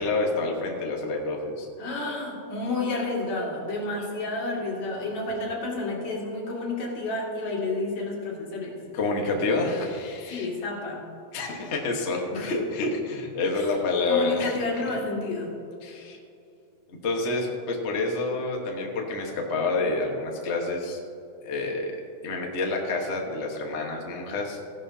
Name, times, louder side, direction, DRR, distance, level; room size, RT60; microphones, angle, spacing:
voice 1, 0.0-1.7 8.9-10.5 11.3-14.6 15.8-16.2 16.9-21.0 21.4-22.0 22.2-24.6, left 3 dB, 90° left, 0 dB, 0.6 m, -28 dB
voice 2, 1.8-8.8 10.3-11.1 12.3-12.5 13.6-13.7 14.1-15.6, left 2 dB, 65° left, -4 dB, 3.6 m, -30 dB
16.5 x 11.0 x 2.8 m, 2.5 s
omnidirectional pair, 3.6 m